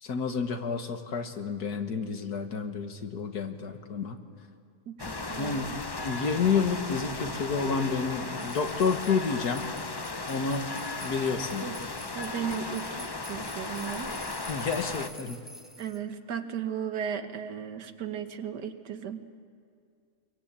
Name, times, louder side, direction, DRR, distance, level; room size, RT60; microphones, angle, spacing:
voice 1, 0.0-4.2 5.4-5.7 6.0-9.7 10.3-10.7 11.0-11.7 14.5-15.4, left 5 dB, 70° left, 6 dB, 2.0 m, -30 dB
voice 2, 4.9-5.7 11.6-11.8 12.1-14.1 15.8-19.3, right 8 dB, 80° right, 8 dB, 1.8 m, -36 dB
sound 1, 5.0-15.1, left 3 dB, 35° left, 0.4 m, -36 dB
sound 2, 8.4-16.0, equal, ahead, 2.2 m, -48 dB
23.5 x 23.0 x 8.7 m, 2.4 s
omnidirectional pair, 1.7 m